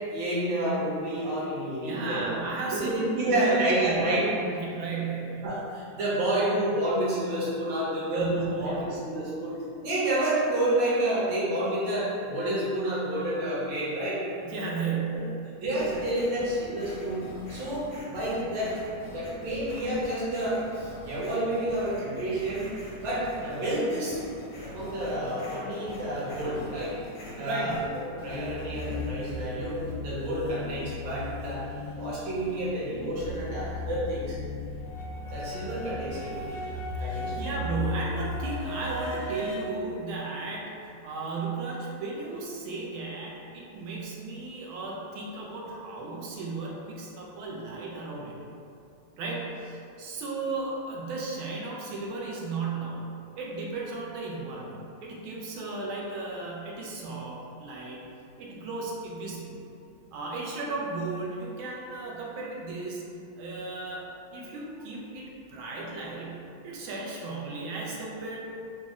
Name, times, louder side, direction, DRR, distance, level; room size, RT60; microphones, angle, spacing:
voice 1, 0.0-2.3 2.7-4.2 5.4-9.6 9.8-14.2 15.1-15.2 15.6-17.2 17.5-18.7 19.1-22.7 23.0-24.2 24.6-26.9 27.3-27.7 28.2-29.8 30.0-31.6 32.0-34.4 35.3-36.4 37.0-37.4, right 1 dB, 70° right, -8 dB, 1.6 m, -29 dB
voice 2, 1.9-4.1 4.5-5.4 8.1-9.0 14.4-15.3 27.4-27.9 37.1-48.4 49.2-53.1 53.3-58.1 58.4-59.6 60.1-63.0 63.4-68.4, right 3 dB, 90° right, -3 dB, 1.5 m, -35 dB
sound 1, 15.8-29.4, equal, 60° left, 0.8 m, -45 dB
sound 2, 28.2-39.7, left 2 dB, 85° left, 1.3 m, -36 dB
4.0 x 2.0 x 3.5 m, 2.6 s
omnidirectional pair, 2.2 m